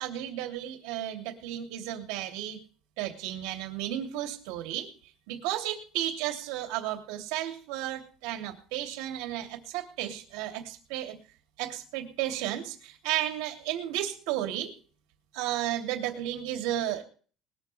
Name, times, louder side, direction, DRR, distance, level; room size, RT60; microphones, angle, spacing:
voice 1, 0.0-2.6 3.0-4.9 5.3-11.1 11.6-14.7 15.3-17.0, right 12 dB, 90° right, 3 dB, 3.0 m, -33 dB
20.5 x 13.5 x 3.4 m, 0.41 s
cardioid pair, 165°, 0 cm